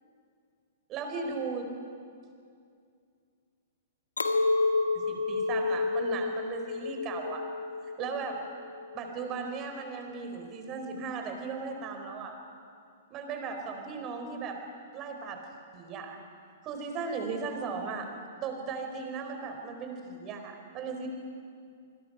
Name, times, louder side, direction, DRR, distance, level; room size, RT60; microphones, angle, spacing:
voice 1, 0.9-1.7 4.9-7.4 8.0-8.4 8.9-12.3 13.1-14.6 14.9-15.4 15.7-16.2 16.6-18.1 18.4-21.1, right 5 dB, 35° right, 4 dB, 4.1 m, -37 dB
Chink clink, 4.2-9.5, left 3 dB, 85° left, 1.4 m, -30 dB
27.5 x 21.0 x 5.7 m, 2.3 s
figure-of-eight pair, 110°, 0 cm